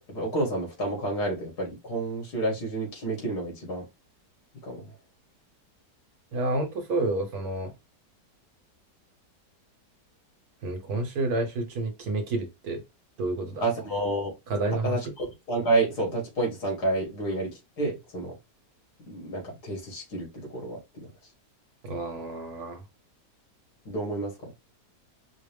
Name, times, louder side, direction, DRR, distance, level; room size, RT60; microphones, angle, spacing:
voice 1, 0.1-3.9 4.6-4.9 13.6-14.3 14.8-18.4 19.1-20.8 23.9-24.5, right 2 dB, 70° left, 2.4 m, -29 dB
voice 2, 6.3-7.7 10.6-12.8 13.2-13.6 14.5-15.0 21.8-22.8, right 2 dB, 65° right, 1.4 m, -29 dB
5.1 x 2.0 x 3.4 m
omnidirectional pair, 1.8 m